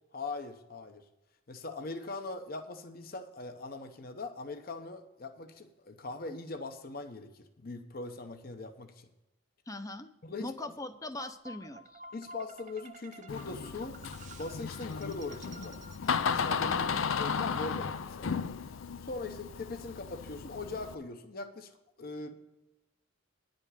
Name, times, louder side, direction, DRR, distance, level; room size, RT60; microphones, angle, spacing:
voice 1, 0.1-1.0 1.5-9.1 10.2-10.7 12.1-14.0 14.4-15.8 16.2-16.8 17.2-18.5 19.0-21.7 22.0-22.3, left 3 dB, 45° left, 7 dB, 0.9 m, -41 dB
voice 2, 9.7-10.1 10.4-12.0 16.7-17.1, left 2 dB, 15° left, 10 dB, 0.6 m, -41 dB
sound 1, 11.2-17.3, right 2 dB, 35° right, 0.6 m, -52 dB
Door, 13.3-21.0, left 6 dB, 80° left, 0.5 m, -34 dB
10.0 x 5.3 x 8.2 m, 0.95 s
head